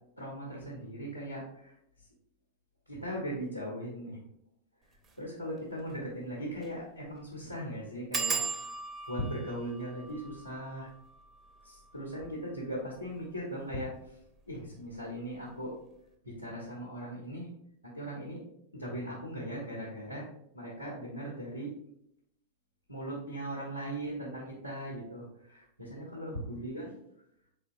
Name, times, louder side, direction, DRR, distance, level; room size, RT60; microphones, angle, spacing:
voice 1, 0.2-1.7 2.9-4.2 5.2-8.6 9.1-10.9 11.6-13.9 14.5-15.7 16.2-17.5 17.9-18.4 18.7-20.3 20.5-21.7 22.9-26.9, equal, 85° left, -4 dB, 0.9 m, -39 dB
sound 1, 5.0-5.2 5.6-5.7 5.9-6.0 6.5-6.8 7.1-7.2 8.1-13.4 14.1-14.6 14.9-15.3 15.5-15.6, right 5 dB, 25° right, 0.6 m, -39 dB
3.8 x 3.8 x 2.5 m, 0.74 s
figure-of-eight pair, 90°, 0 cm